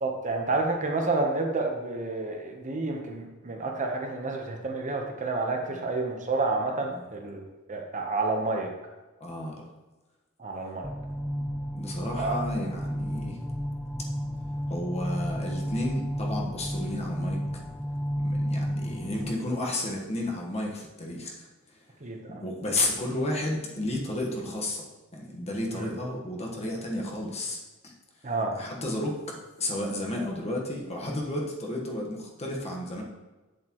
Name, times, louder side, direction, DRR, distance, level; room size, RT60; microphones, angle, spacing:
voice 1, 0.0-8.7 10.4-10.9 12.2-12.4 22.0-22.4 25.7-25.9 28.2-28.5, right 3 dB, 35° right, 2 dB, 0.9 m, -29 dB
voice 2, 9.2-9.5 11.7-13.4 14.7-17.6 18.2-21.5 22.3-24.9 25.1-27.9 28.5-29.2 29.6-33.0, left 1 dB, 30° left, -1 dB, 1.3 m, -32 dB
sound 1, 10.8-19.3, equal, ahead, 0.4 m, -32 dB
8.3 x 7.5 x 3.0 m, 1.2 s
head